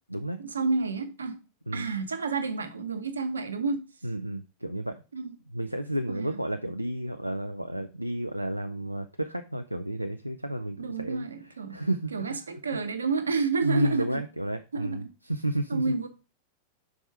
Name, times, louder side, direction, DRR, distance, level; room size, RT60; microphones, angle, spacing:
voice 1, 0.4-1.4 1.7-3.9 5.1-5.3 6.1-6.4 10.8-11.8 12.1-14.2 14.7-15.1 15.7-16.1, right 4 dB, 75° right, 0.8 m, -30 dB
voice 2, 4.0-5.0 5.5-11.3 11.7-12.4 13.6-15.9, right 1 dB, 90° right, 0.3 m, -31 dB
5.2 x 4.8 x 4.6 m
figure-of-eight pair, 90°, 0 cm